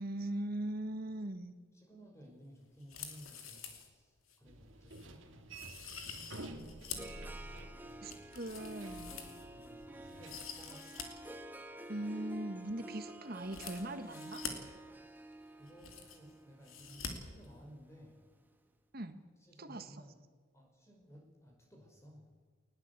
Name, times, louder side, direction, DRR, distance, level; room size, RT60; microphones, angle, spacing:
voice 1, 0.0-1.5 8.0-9.2 11.9-14.4 18.9-19.2 19.6-19.9, right 1 dB, 45° right, 10 dB, 1.5 m, -40 dB
voice 2, 1.7-6.1 7.2-8.3 9.2-11.2 15.5-18.2 19.4-20.2 20.5-22.3, equal, 15° left, 1 dB, 5.1 m, -58 dB
sound 1, 2.8-3.9 4.3-4.4 4.9-5.1 5.5-7.2 7.6-9.7 10.1-11.1 11.3-11.4 13.4-14.5 15.3-15.4 15.6-16.3 16.6-17.1 17.4-17.5, left 7 dB, 85° left, 2.9 m, -46 dB
sound 2, 4.5-10.4, right 2 dB, 65° right, 2.2 m, -51 dB
Harp, 6.3-18.4, right 1 dB, 10° right, 1.2 m, -50 dB
19.5 x 17.5 x 8.3 m, 1.5 s
head